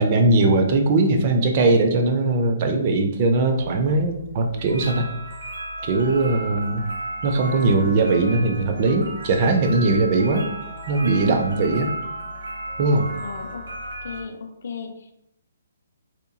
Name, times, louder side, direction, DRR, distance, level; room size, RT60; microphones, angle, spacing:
voice 1, 0.0-5.1 5.8-6.8 7.2-10.5 10.9-11.9 12.8-13.1, right 2 dB, 30° right, 4 dB, 0.3 m, -20 dB
sound 1, 3.6-14.2, right 1 dB, 70° right, 0.7 m, -34 dB
voice 2, 13.2-13.6 14.0-15.2, left 5 dB, 55° left, 4 dB, 0.4 m, -36 dB
2.8 x 2.2 x 2.6 m, 0.79 s
hypercardioid pair, 165°, 0 cm